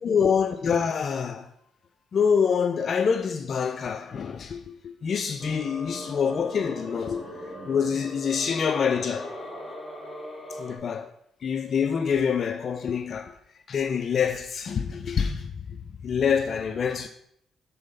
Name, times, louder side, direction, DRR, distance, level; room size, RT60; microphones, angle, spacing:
voice 1, 0.0-1.5 2.1-7.3 7.7-9.3 10.6-11.1 11.4-13.4 13.7-15.8 16.0-17.1, left 6 dB, 50° left, 0.4 m, -26 dB
sound 1, 5.4-10.8, left 1 dB, 15° left, 2.1 m, -39 dB
6.8 x 4.1 x 5.3 m
cardioid pair, 90°, 0 cm